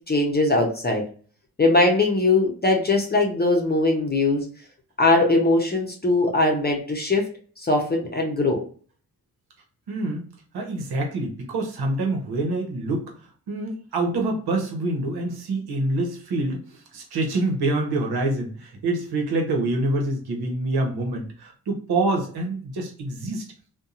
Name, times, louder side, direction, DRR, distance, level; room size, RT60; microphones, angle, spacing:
voice 1, 0.1-1.0 1.6-4.5 5.0-7.3 7.6-8.6, left 2 dB, 25° left, 0 dB, 0.7 m, -20 dB
voice 2, 9.9-10.3 10.5-13.1 13.5-23.4, right 2 dB, 85° right, 1 dB, 0.9 m, -26 dB
2.7 x 2.2 x 2.4 m, 0.43 s
cardioid pair, 55°, 37 cm